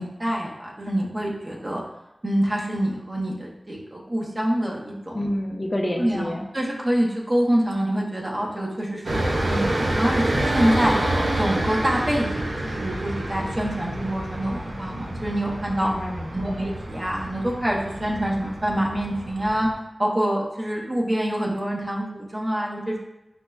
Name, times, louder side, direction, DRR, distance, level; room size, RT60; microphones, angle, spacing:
voice 1, 0.0-1.8 2.2-5.3 6.0-10.9 11.4-15.9 16.3-19.7 20.0-23.0, right 1 dB, 35° right, -3 dB, 0.7 m, -26 dB
voice 2, 5.1-6.4 15.8-16.6, left 1 dB, 30° left, 1 dB, 0.3 m, -28 dB
sound 1, 9.0-19.7, right 1 dB, 90° right, 0.5 m, -28 dB
5.1 x 2.1 x 2.3 m, 0.96 s
wide cardioid pair, 70°, 0 cm